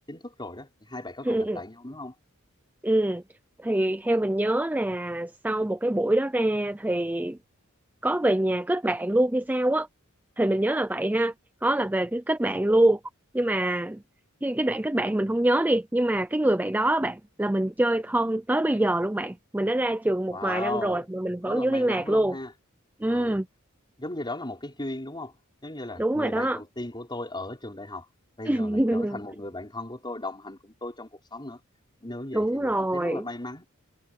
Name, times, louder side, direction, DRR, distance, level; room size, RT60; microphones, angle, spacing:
voice 1, 0.1-2.2 20.3-21.1 21.4-22.5 23.1-23.4 24.0-25.4 25.6-28.1 28.4-31.6 32.0-33.6, left 2 dB, 20° left, 5.7 m, -37 dB
voice 2, 1.3-1.6 2.8-3.2 3.6-7.4 8.0-9.9 10.4-11.3 11.6-13.0 13.3-14.0 14.4-22.3 23.0-23.5 26.0-26.6 28.5-29.2 32.3-33.2, right 1 dB, 10° right, 0.5 m, -25 dB
head